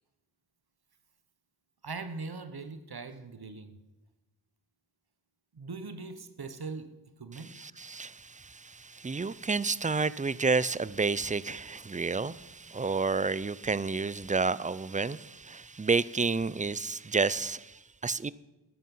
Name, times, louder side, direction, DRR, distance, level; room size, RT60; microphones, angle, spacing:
voice 1, 1.8-3.7 5.5-6.9 7.2-7.6, right 4 dB, 75° right, 8 dB, 1.0 m, -41 dB
voice 2, 7.3-18.3, right 4 dB, 20° right, 19 dB, 0.4 m, -30 dB
12.5 x 12.0 x 5.5 m, 1.0 s
wide cardioid pair, 55°, 38 cm